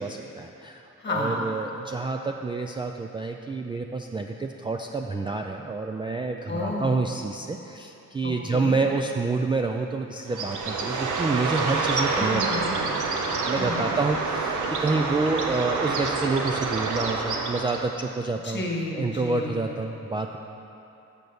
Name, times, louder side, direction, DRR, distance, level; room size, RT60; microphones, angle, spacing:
voice 1, 0.0-12.8 13.5-18.6 18.9-20.4, right 3 dB, 15° right, 2 dB, 0.3 m, -28 dB
voice 2, 1.0-1.5 6.5-6.9 8.2-8.8 12.2-13.2 13.6-13.9 18.4-19.7, left 2 dB, 35° left, -1 dB, 1.6 m, -32 dB
Bird, 10.3-18.0, right 4 dB, 75° right, 0.8 m, -27 dB
6.2 x 5.3 x 6.9 m, 2.8 s
cardioid pair, 80°, 31 cm